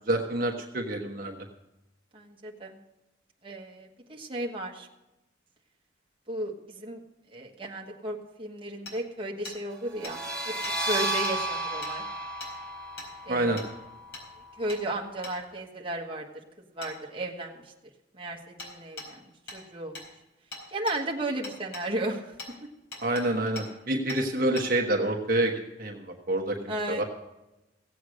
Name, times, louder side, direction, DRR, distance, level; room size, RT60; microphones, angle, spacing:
voice 1, 0.1-1.4 13.3-13.6 23.0-25.5 25.8-26.6 26.9-27.0, right 1 dB, 50° right, 2 dB, 1.2 m, -27 dB
voice 2, 2.1-2.8 3.4-4.9 6.3-7.0 7.3-10.5 10.9-12.0 13.3-13.6 14.6-16.2 16.7-17.6 18.1-20.0 20.7-22.3 26.7-27.0, right 1 dB, 30° right, -1 dB, 1.4 m, -34 dB
Hammer, 8.9-9.0 9.4-9.6 10.0-10.1 10.6-10.8 11.2-11.4 11.8-11.9 12.4-12.5 13.0-13.1 13.6-13.7 14.1-14.3 14.7-14.8 15.2-15.4 16.8-16.9 18.6-18.7 19.0-19.1 19.5-19.6 19.9-20.1 20.5-21.0 21.4-21.9 22.4-22.5 22.9-23.2 23.6-23.7 24.1-24.2 24.6-24.7, left 2 dB, 60° left, 4.4 m, -40 dB
sound 1, 9.9-15.4, right 2 dB, 5° left, 1.5 m, -34 dB
16.5 x 8.1 x 6.3 m, 0.96 s
head